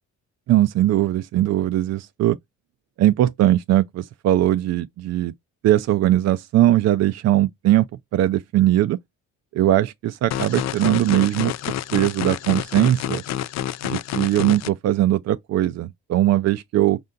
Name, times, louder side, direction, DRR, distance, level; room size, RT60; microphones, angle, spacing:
voice 1, 0.5-2.4 3.0-5.3 5.6-7.9 8.1-9.0 9.5-11.5 11.9-13.2 13.8-17.0, right 14 dB, 60° right, 0.4 m, -20 dB
sound 1, 10.3-14.7, left 11 dB, 65° left, 0.4 m, -28 dB
5.4 x 2.6 x 3.7 m
cardioid pair, 90°, 30 cm